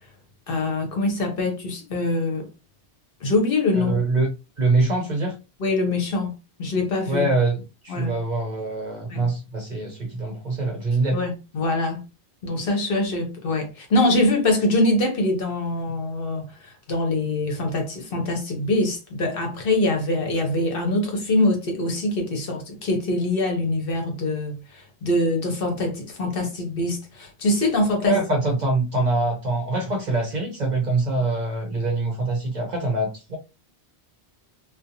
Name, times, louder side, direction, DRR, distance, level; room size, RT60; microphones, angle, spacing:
voice 1, 0.5-2.5 3.2-4.0 5.6-6.3 6.6-7.3 7.9-8.1 9.1-9.2 11.1-12.0 12.4-28.2, left 2 dB, 60° left, 0.9 m, -24 dB
voice 2, 3.7-4.3 4.6-5.4 7.1-11.2 28.0-33.4, right 2 dB, 50° right, 0.6 m, -24 dB
2.4 x 2.2 x 2.8 m
omnidirectional pair, 1.1 m